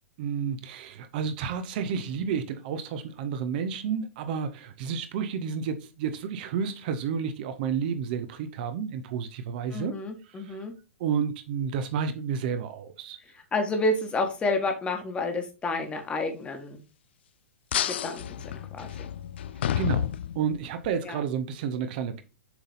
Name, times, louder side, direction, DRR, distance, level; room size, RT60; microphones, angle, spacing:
voice 1, 0.2-9.9 10.3-10.6 11.0-13.2 18.9-19.0 19.8-20.1 20.3-22.2, right 7 dB, 45° right, 0.7 m, -31 dB
voice 2, 9.7-10.7 13.5-16.8 17.9-19.1 21.0-21.2, left 2 dB, 15° left, 1.3 m, -30 dB
sound 1, 17.7-20.9, left 10 dB, 55° left, 0.4 m, -30 dB
7.0 x 4.0 x 4.0 m
figure-of-eight pair, 105°, 7 cm